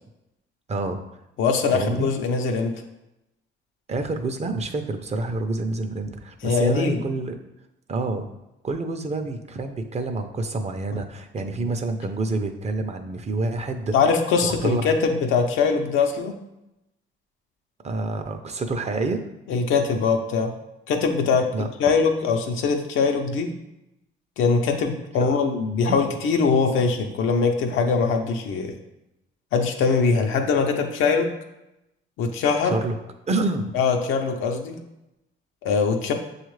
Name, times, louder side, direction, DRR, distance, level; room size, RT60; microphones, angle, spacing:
voice 1, 0.7-1.0 1.7-2.1 3.9-7.4 7.9-8.3 8.6-14.0 14.4-14.9 17.8-19.2 21.5-21.7 25.2-25.4 25.9-26.2 32.6-33.0 33.3-33.8, right 3 dB, 35° right, 7 dB, 0.5 m, -27 dB
voice 2, 1.4-2.7 6.4-7.0 13.9-16.3 19.5-20.5 20.9-21.5 21.8-23.5 24.4-28.7 29.5-31.3 32.2-32.8 33.7-34.8 35.6-36.1, left 5 dB, 90° left, 4 dB, 0.6 m, -22 dB
7.0 x 2.4 x 3.2 m, 0.91 s
cardioid pair, 90°, 20 cm